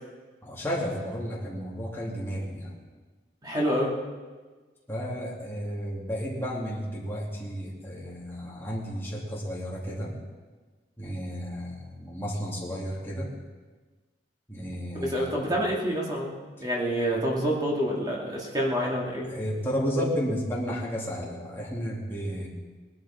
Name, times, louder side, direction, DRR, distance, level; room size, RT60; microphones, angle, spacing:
voice 1, 0.4-2.7 4.9-10.1 11.0-13.3 14.5-15.5 18.8-18.9 19.3-22.5, equal, 15° left, -5 dB, 2.8 m, -32 dB
voice 2, 3.4-3.9 14.9-16.3 16.6-19.3, equal, 25° right, -3 dB, 2.4 m, -27 dB
19.5 x 12.0 x 4.5 m, 1.4 s
head